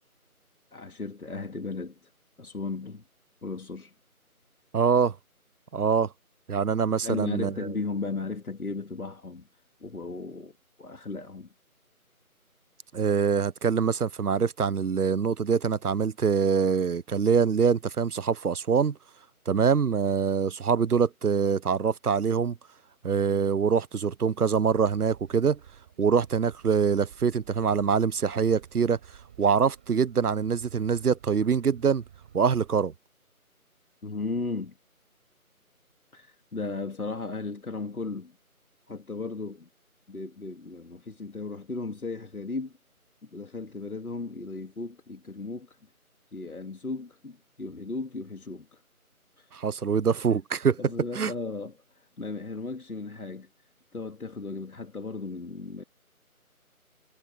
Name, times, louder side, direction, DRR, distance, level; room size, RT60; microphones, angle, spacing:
voice 1, 0.7-2.0 2.4-3.0 3.4-3.9 7.0-9.4 9.8-10.5 10.8-11.5 34.0-34.7 36.1-38.3 38.9-39.7 40.1-42.7 43.2-45.8 46.3-48.8 49.4-49.5 50.8-53.5 53.9-55.8, left 3 dB, 75° left, 2.3 m, -36 dB
voice 2, 4.7-5.1 5.7-6.1 6.5-7.5 12.9-19.0 19.5-22.6 23.0-25.6 26.0-29.0 29.4-32.0 32.3-32.9 49.5-50.8 51.1-51.3, right 6 dB, 85° right, 0.8 m, -24 dB
sound 1, 24.7-32.7, right 9 dB, 5° right, 6.5 m, -53 dB
figure-of-eight pair, 180°, 44 cm